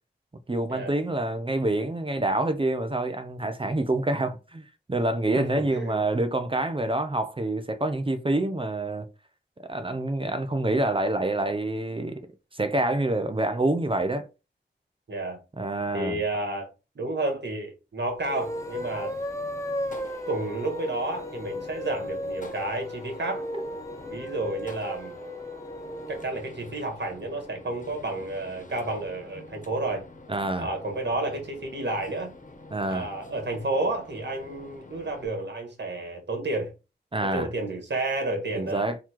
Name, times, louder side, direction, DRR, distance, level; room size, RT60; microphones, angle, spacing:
voice 1, 0.5-9.1 9.7-12.2 12.5-14.3 15.6-16.2 23.5-23.6 30.3-30.7 32.7-33.1 37.1-37.5 38.6-39.0, right 2 dB, 30° right, 0.6 m, -27 dB
voice 2, 5.4-6.0 15.1-15.4 15.9-16.7 16.9-19.2 20.3-23.4 24.1-25.2 26.1-30.0 30.6-32.3 32.8-36.7 37.2-38.9, right 2 dB, 75° right, 1.6 m, -31 dB
Gunshot gunfire, 18.2-35.2, left 2 dB, 45° left, 1.2 m, -46 dB
sound 1, 18.2-26.3, equal, 15° left, 0.7 m, -36 dB
3.9 x 2.9 x 4.5 m
wide cardioid pair, 75°, 18 cm